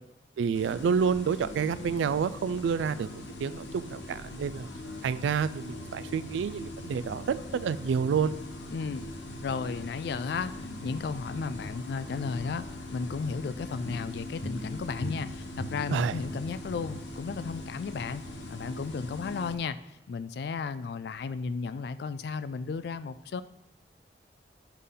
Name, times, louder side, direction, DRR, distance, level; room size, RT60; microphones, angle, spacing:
voice 1, 0.4-3.1 3.4-4.7 5.0-8.4 15.9-16.1, right 6 dB, 85° right, 15 dB, 0.3 m, -28 dB
sound 1, 0.5-19.6, left 1 dB, 85° left, 1.0 m, -41 dB
voice 2, 8.7-9.1 9.4-18.2 18.5-19.8 20.1-23.4, left 5 dB, 60° left, 14 dB, 0.3 m, -34 dB
8.2 x 5.5 x 3.8 m, 0.93 s
head